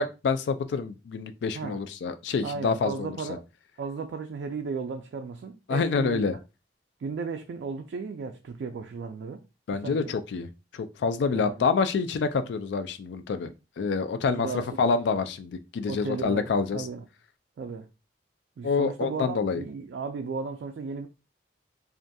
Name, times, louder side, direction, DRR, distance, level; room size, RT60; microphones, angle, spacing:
voice 1, 0.0-3.1 5.7-6.4 9.7-10.5 10.7-14.5 14.8-16.8 18.6-19.6, left 5 dB, 85° left, 0.3 m, -27 dB
voice 2, 2.4-3.4 3.8-6.2 7.0-9.4 9.7-10.1 11.3-11.7 14.4-14.9 15.9-17.0 17.6-17.9 18.6-21.1, right 5 dB, 80° right, 0.3 m, -35 dB
2.4 x 2.2 x 2.6 m
head